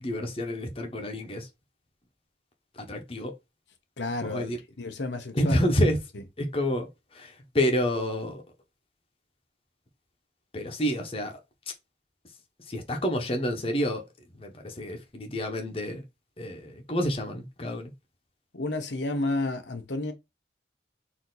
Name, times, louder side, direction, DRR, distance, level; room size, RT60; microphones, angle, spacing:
voice 1, 0.0-1.5 2.8-3.3 4.2-4.6 5.3-6.0 6.4-8.4 10.5-11.4 12.7-14.0 14.4-16.0 16.4-17.9, equal, 30° left, 1.0 m, -28 dB
voice 2, 4.0-4.5 4.8-5.6 6.1-6.2 18.5-20.1, left 2 dB, 85° left, 0.9 m, -31 dB
4.4 x 2.9 x 3.9 m
head